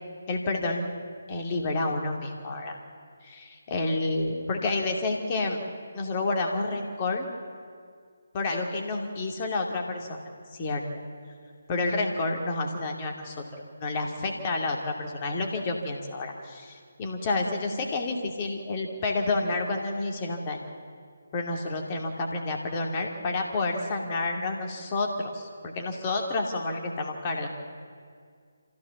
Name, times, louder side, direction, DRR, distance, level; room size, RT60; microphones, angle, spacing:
voice 1, 0.3-0.9 1.3-2.8 3.2-5.6 5.9-7.3 8.3-10.2 10.5-10.8 11.7-13.4 13.8-20.6 21.3-27.5, left 2 dB, 30° left, 2 dB, 2.6 m, -29 dB
26.0 x 15.5 x 7.2 m, 2.1 s
figure-of-eight pair, 150°, 0 cm